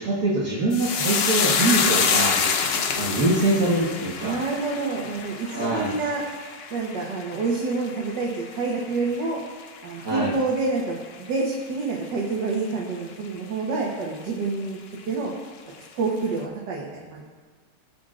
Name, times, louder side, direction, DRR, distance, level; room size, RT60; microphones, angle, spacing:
voice 1, 0.0-2.4 3.0-4.4 5.4-5.9 10.0-10.3, right 2 dB, 60° right, -6 dB, 1.8 m, -24 dB
sound 1, 0.7-9.3 9.6-10.3 10.6-10.8, left 5 dB, 70° left, 0.5 m, -27 dB
voice 2, 4.2-6.2 6.7-9.4 9.8-14.8 15.1-15.3 15.9-17.3, right 3 dB, 80° right, -4 dB, 1.8 m, -27 dB
19.0 x 6.3 x 2.5 m, 1.4 s
omnidirectional pair, 1.9 m